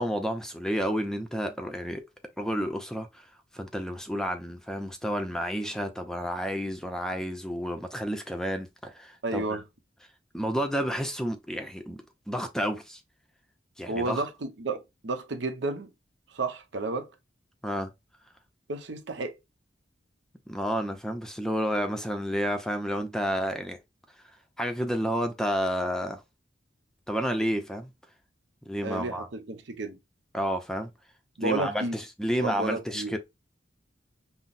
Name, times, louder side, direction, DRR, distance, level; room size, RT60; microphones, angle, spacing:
voice 1, 0.0-2.0 2.4-3.2 3.5-9.6 10.3-12.0 12.3-13.0 13.8-14.2 17.6-17.9 20.5-23.8 24.6-26.2 27.1-27.9 28.7-29.3 30.3-30.9 31.4-33.2, equal, 5° left, 0.5 m, -30 dB
voice 2, 9.2-9.6 13.9-15.9 16.3-17.1 18.7-19.4 28.8-30.0 31.4-32.0 32.4-33.2, right 3 dB, 85° right, 0.8 m, -32 dB
5.7 x 2.0 x 2.5 m
head